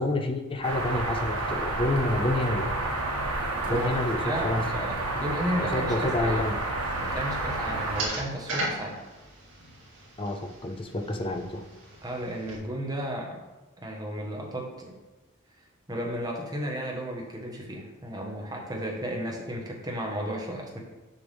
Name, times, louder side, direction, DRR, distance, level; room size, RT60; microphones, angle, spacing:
voice 1, 0.0-2.7 3.7-4.6 5.6-6.6 10.2-11.6, left 1 dB, 25° left, 6 dB, 0.5 m, -28 dB
sound 1, 0.6-8.1, right 2 dB, 85° right, 1.3 m, -30 dB
voice 2, 4.2-6.5 7.0-9.0 12.0-13.4 13.8-15.0 15.9-20.8, equal, 15° right, -1 dB, 1.2 m, -33 dB
sound 2, 6.8-12.6, right 2 dB, 60° right, 2.2 m, -38 dB
6.9 x 5.7 x 3.4 m, 1.1 s
head